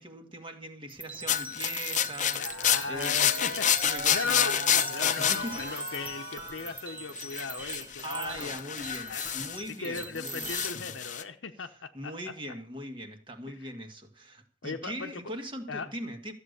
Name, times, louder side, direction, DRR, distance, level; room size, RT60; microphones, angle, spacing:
voice 1, 0.0-5.5 8.0-10.5 11.0-11.2 11.9-16.3, right 1 dB, 25° right, 1.8 m, -41 dB
sound 1, 0.9-10.7, right 3 dB, 10° right, 1.0 m, -42 dB
sound 2, 1.3-6.5 7.2-9.7 9.9-11.2, left 9 dB, 40° left, 0.8 m, -29 dB
voice 2, 2.3-4.6 4.9-8.5 8.9-9.3 9.8-12.3 13.5-13.7 14.6-15.1 15.7-15.9, left 4 dB, 80° left, 0.9 m, -38 dB
sound 3, 2.3-7.1, right 3 dB, 55° right, 1.3 m, -41 dB
14.0 x 8.2 x 6.7 m
head